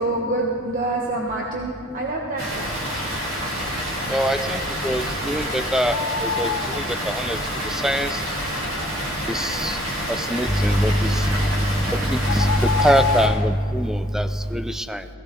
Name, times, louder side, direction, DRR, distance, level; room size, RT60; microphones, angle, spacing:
voice 1, 0.0-2.7, right 2 dB, 40° right, -1 dB, 1.1 m, -26 dB
Water, 2.4-13.3, equal, 75° right, 3.1 m, -28 dB
voice 2, 4.1-7.4 7.7-8.2 9.3-9.8 10.1-15.0, equal, ahead, 11 dB, 0.4 m, -23 dB
sound 1, 5.9-6.8 11.4-11.6 12.2-13.5, left 7 dB, 75° left, 0.5 m, -26 dB
18.0 x 15.5 x 3.8 m, 2.3 s
head